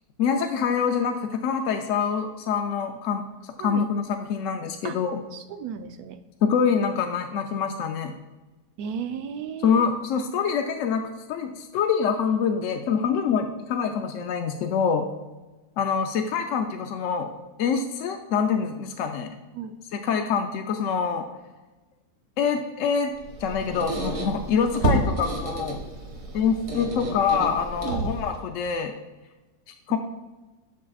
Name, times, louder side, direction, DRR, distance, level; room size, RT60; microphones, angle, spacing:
voice 1, 0.2-3.2 3.6-4.0 4.3-5.2 6.4-8.1 9.6-15.1 15.8-17.3 17.6-19.3 19.9-21.3 22.4-23.1 23.4-25.8 26.3-28.9 29.9-30.0, left 6 dB, 70° left, 5 dB, 0.7 m, -25 dB
voice 2, 5.3-6.2 8.8-9.8 19.5-19.7 27.8-28.1 29.9-30.0, right 7 dB, 75° right, 8 dB, 1.0 m, -34 dB
Squeak, 23.2-28.4, right 2 dB, 55° right, 1.5 m, -30 dB
7.4 x 7.0 x 2.3 m, 1.2 s
omnidirectional pair, 1.8 m